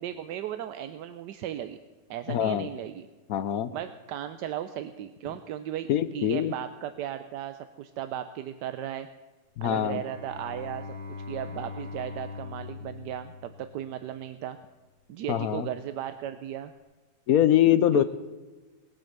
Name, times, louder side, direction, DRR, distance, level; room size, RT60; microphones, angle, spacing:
voice 1, 0.0-1.8 2.1-3.1 3.7-9.1 9.6-10.9 11.3-14.6 15.1-16.7 17.9-18.0, right 11 dB, 85° right, 10 dB, 1.3 m, -36 dB
voice 2, 2.3-2.7 3.3-3.7 5.9-6.5 9.6-10.0 15.3-15.7 17.3-18.0, left 11 dB, 70° left, 14 dB, 1.0 m, -23 dB
Bowed string instrument, 9.7-14.0, left 5 dB, 5° left, 2.3 m, -41 dB
20.0 x 7.9 x 6.6 m, 1.3 s
omnidirectional pair, 1.8 m